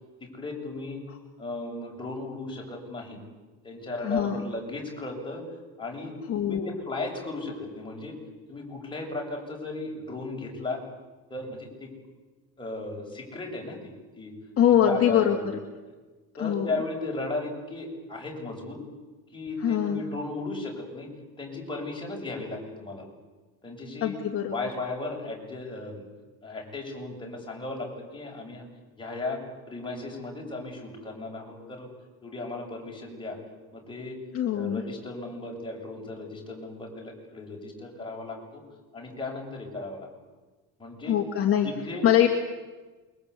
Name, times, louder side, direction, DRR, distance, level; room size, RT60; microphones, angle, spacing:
voice 1, 0.2-1.0 1.4-3.2 3.6-5.4 5.8-6.2 6.4-8.2 8.5-10.8 11.3-12.0 12.6-14.3 14.7-15.5 16.4-18.8 19.3-21.1 21.4-23.1 23.6-24.2 24.5-26.0 26.4-28.6 29.0-31.9 32.2-33.4 33.7-34.2 34.5-38.6 38.9-40.1 40.8-41.2 41.6-42.1, left 2 dB, 15° left, -1 dB, 7.4 m, -36 dB
voice 2, 4.0-4.4 6.3-6.7 14.6-15.4 16.4-16.7 19.6-20.0 24.0-24.5 34.3-34.8 41.1-41.7 42.0-42.3, left 10 dB, 35° left, 2 dB, 2.6 m, -23 dB
28.0 x 24.0 x 8.5 m, 1.3 s
cardioid pair, 155°, 38 cm